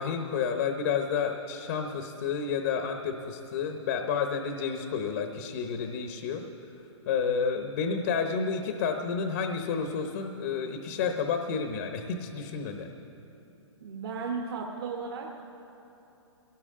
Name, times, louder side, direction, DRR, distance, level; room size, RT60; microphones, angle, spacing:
voice 1, 0.0-6.4 7.1-12.9, left 6 dB, 40° left, 5 dB, 1.0 m, -30 dB
voice 2, 13.8-15.4, right 5 dB, 50° right, 0 dB, 1.3 m, -35 dB
22.0 x 18.0 x 3.7 m, 3.0 s
hypercardioid pair, 165°, 15 cm